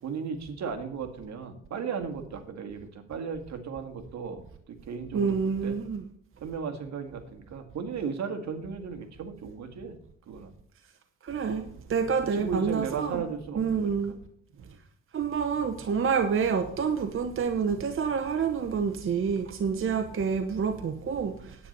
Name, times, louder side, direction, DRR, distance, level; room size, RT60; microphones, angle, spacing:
voice 1, 0.0-5.8 6.4-9.9 10.3-10.5 12.3-14.0 14.5-14.8 20.1-20.2, right 6 dB, 65° right, 1.8 m, -36 dB
voice 2, 5.1-6.0 11.2-13.2 13.5-14.1 15.1-21.6, right 6 dB, 45° right, 0.9 m, -28 dB
10.0 x 9.2 x 5.4 m
cardioid pair, 90°, 30 cm